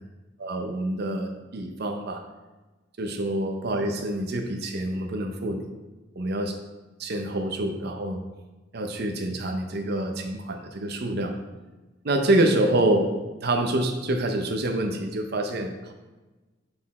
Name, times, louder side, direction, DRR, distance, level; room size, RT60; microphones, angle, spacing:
voice 1, 0.4-2.2 3.0-5.7 6.2-6.6 7.0-8.2 8.7-11.4 12.0-13.1 13.4-15.9, right 1 dB, 55° right, 4 dB, 0.6 m, -26 dB
7.9 x 4.2 x 4.2 m, 1.2 s
head